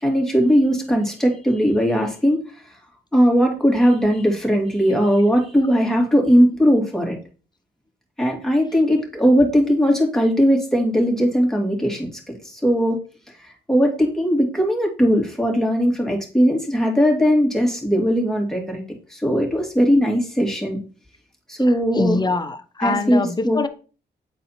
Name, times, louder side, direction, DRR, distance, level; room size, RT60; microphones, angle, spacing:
voice 1, 0.0-2.4 3.1-7.2 8.2-13.0 13.7-18.8 19.1-20.8 21.5-22.2 22.8-23.6, equal, 5° left, 2.6 m, -19 dB
voice 2, 21.9-23.7, left 3 dB, 25° left, 1.0 m, -23 dB
8.9 x 4.0 x 4.3 m
cardioid pair, 70°, 18 cm